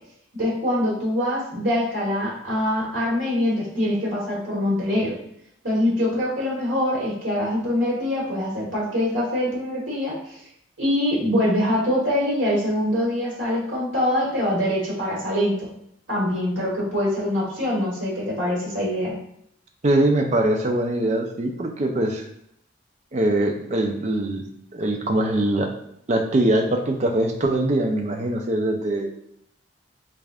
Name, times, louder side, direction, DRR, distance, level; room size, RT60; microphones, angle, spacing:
voice 1, 0.4-5.1 5.6-10.2 10.8-15.7 16.1-19.1, left 1 dB, 85° right, -5 dB, 1.2 m, -24 dB
voice 2, 19.8-22.2 23.1-24.4 24.7-25.7 26.1-29.1, right 1 dB, 35° right, 3 dB, 0.4 m, -22 dB
3.7 x 3.4 x 2.4 m, 0.72 s
head